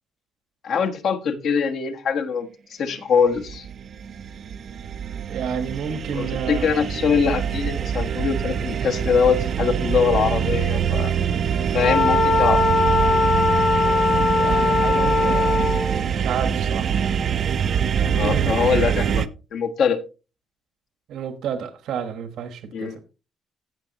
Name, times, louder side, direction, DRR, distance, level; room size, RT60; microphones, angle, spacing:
voice 1, 0.6-3.7 6.1-11.1 11.7-12.6 18.1-19.2 19.5-20.0 22.7-23.0, left 6 dB, 55° left, 1.3 m, -23 dB
sound 1, 3.3-19.3, right 8 dB, 45° right, 0.5 m, -24 dB
voice 2, 5.3-6.7 14.3-16.9 18.2-18.5 21.1-23.0, right 7 dB, 70° right, 1.2 m, -30 dB
Wind instrument woodwind instrument, 11.8-16.0, left 3 dB, 75° left, 3.2 m, -20 dB
15.5 x 6.2 x 2.9 m
cardioid pair, 160°, 0 cm